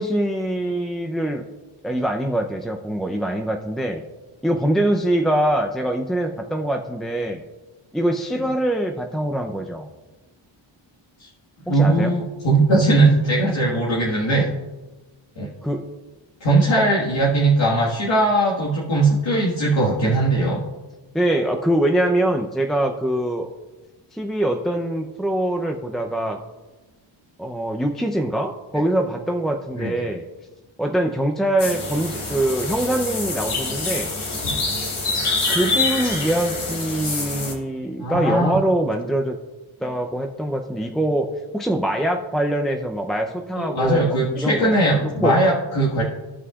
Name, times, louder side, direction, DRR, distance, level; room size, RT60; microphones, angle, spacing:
voice 1, 0.0-1.4 1.8-4.0 4.4-7.4 7.9-9.9 11.7-12.1 15.6-15.9 16.8-16.9 21.1-23.5 24.1-26.4 27.4-30.3 30.8-34.1 35.2-39.4 39.8-45.4, right 1 dB, ahead, 3 dB, 0.6 m, -23 dB
voice 2, 11.6-14.5 15.4-15.5 16.4-20.6 29.8-29.9 35.1-35.2 38.0-38.6 43.6-46.0, right 2 dB, 65° left, -6 dB, 1.8 m, -19 dB
sound 1, 31.6-37.5, left 3 dB, 80° left, 2.2 m, -26 dB
16.5 x 5.5 x 2.4 m, 1.2 s
cardioid pair, 65°, 49 cm